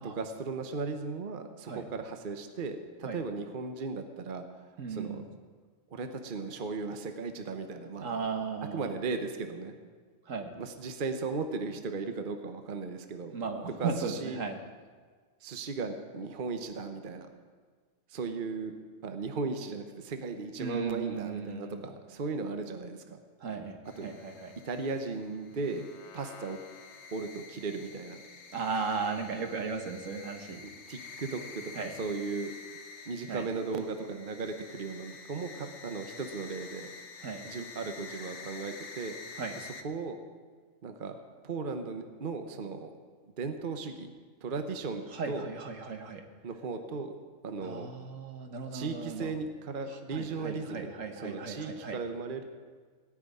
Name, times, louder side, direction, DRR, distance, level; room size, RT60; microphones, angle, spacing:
voice 1, 0.0-4.4 4.9-5.2 5.9-8.1 8.7-9.7 10.6-13.3 13.8-14.4 15.4-17.3 18.1-18.7 19.0-23.2 24.0-24.1 24.6-25.9 26.1-26.6 27.1-28.2 30.9-32.5 33.1-36.9 37.4-39.2 39.6-40.2 40.8-41.2 41.4-42.9 43.4-44.1 44.4-45.5 46.4-47.1 47.4-47.9 48.7-52.4, right 4 dB, 40° right, 7 dB, 1.0 m, -36 dB
voice 2, 4.8-5.2 8.0-8.9 10.3-10.5 13.3-14.6 20.6-21.8 23.4-24.5 28.5-30.6 31.7-32.0 33.3-33.5 37.2-37.5 39.4-39.6 45.1-46.2 47.6-49.3 49.9-52.0, right 5 dB, 70° right, 5 dB, 1.6 m, -36 dB
sound 1, 23.9-39.8, left 4 dB, 55° left, 1.3 m, -48 dB
17.5 x 6.2 x 9.6 m, 1.6 s
omnidirectional pair, 1.4 m